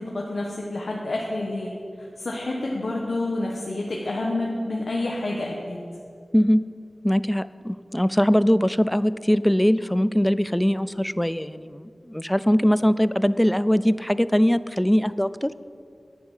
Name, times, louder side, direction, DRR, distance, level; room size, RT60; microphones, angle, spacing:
voice 1, 0.0-1.7 2.0-5.8, left 2 dB, 75° left, -2 dB, 1.2 m, -28 dB
voice 2, 7.0-15.5, equal, 10° left, 16 dB, 0.3 m, -21 dB
10.5 x 9.7 x 5.6 m, 2.3 s
wide cardioid pair, 55°, 0 cm